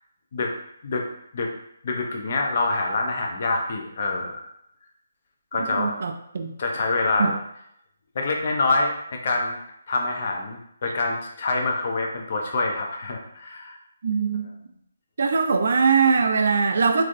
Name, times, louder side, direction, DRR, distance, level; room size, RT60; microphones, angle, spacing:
voice 1, 1.8-4.4 5.5-5.9 6.6-7.3 8.1-9.6 9.9-13.8, left 3 dB, 50° left, 1 dB, 0.6 m, -26 dB
voice 2, 5.6-6.5 7.2-7.3 14.0-14.5 15.2-17.0, right 5 dB, 60° right, 5 dB, 0.3 m, -21 dB
3.1 x 2.5 x 2.6 m, 0.76 s
hypercardioid pair, 160°, 0 cm